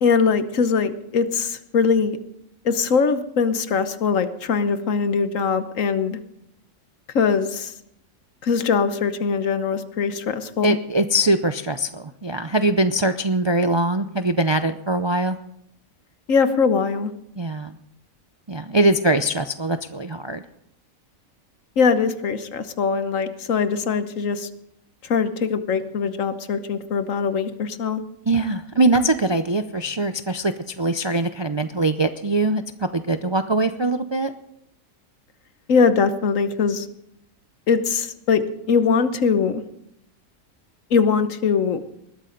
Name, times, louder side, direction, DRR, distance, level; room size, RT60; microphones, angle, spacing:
voice 1, 0.0-2.2 2.6-6.2 7.1-7.7 8.4-10.8 16.3-17.1 21.8-24.5 25.1-28.0 35.7-36.9 37.7-39.6 40.9-41.8, left 5 dB, 75° left, 11 dB, 1.4 m, -21 dB
voice 2, 10.6-15.4 17.4-17.7 18.5-20.4 28.3-32.6 32.9-34.3, right 2 dB, 40° right, 9 dB, 0.4 m, -22 dB
20.5 x 13.0 x 3.9 m, 0.76 s
omnidirectional pair, 1.4 m